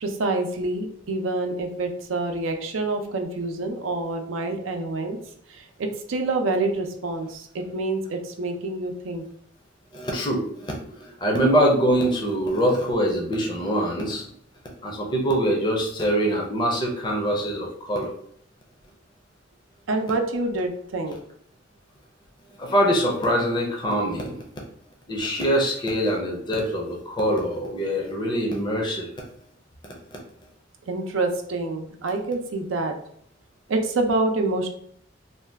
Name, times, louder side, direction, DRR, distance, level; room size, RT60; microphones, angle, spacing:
voice 1, 0.0-5.2 5.5-9.2 19.9-21.2 30.9-32.9 33.7-34.7, right 2 dB, 80° right, 5 dB, 0.5 m, -27 dB
voice 2, 9.9-14.2 14.8-18.1 22.6-24.4 25.1-29.1, equal, 25° left, -1 dB, 0.5 m, -24 dB
2.6 x 2.3 x 3.3 m, 0.66 s
head